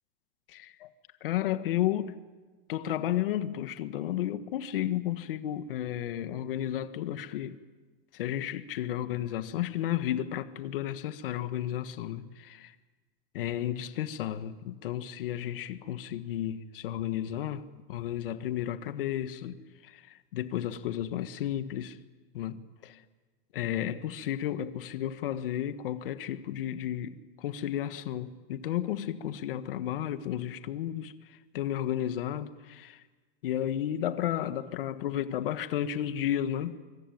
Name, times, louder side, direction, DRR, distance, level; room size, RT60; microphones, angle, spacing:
voice 1, 0.5-0.9 1.2-2.2 2.7-7.6 8.1-12.7 13.3-22.0 22.3-23.0 23.5-33.0 33.4-36.8, left 11 dB, 70° left, 1.5 m, -33 dB
25.0 x 23.5 x 9.3 m
supercardioid pair, 170°, 29 cm